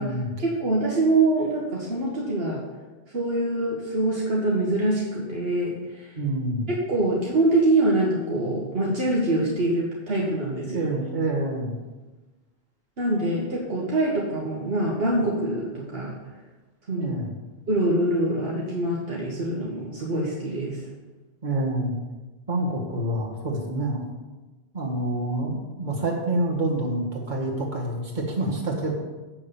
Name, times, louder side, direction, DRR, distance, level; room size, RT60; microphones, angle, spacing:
voice 1, 0.0-2.6 3.1-6.1 6.7-10.8 13.0-16.2 16.9-17.2 17.7-20.8, right 2 dB, 70° right, -3 dB, 1.6 m, -24 dB
voice 2, 6.2-6.7 10.7-11.8 17.0-17.3 21.4-21.9 22.5-24.0 24.7-28.9, right 1 dB, 45° right, -3 dB, 2.1 m, -27 dB
7.6 x 6.4 x 7.0 m, 1.2 s
omnidirectional pair, 1.1 m